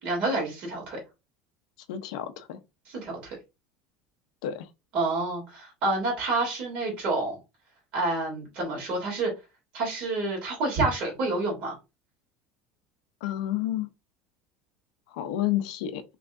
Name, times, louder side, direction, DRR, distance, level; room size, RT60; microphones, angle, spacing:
voice 1, 0.0-1.0 2.9-3.3 4.9-7.3 7.9-9.3 9.7-11.7, right 2 dB, 40° right, 2.9 m, -28 dB
voice 2, 1.9-2.6 4.4-4.7 13.2-13.9 15.1-16.0, left 12 dB, 80° left, 0.8 m, -30 dB
6.0 x 3.2 x 2.6 m
cardioid pair, 170°, 3 cm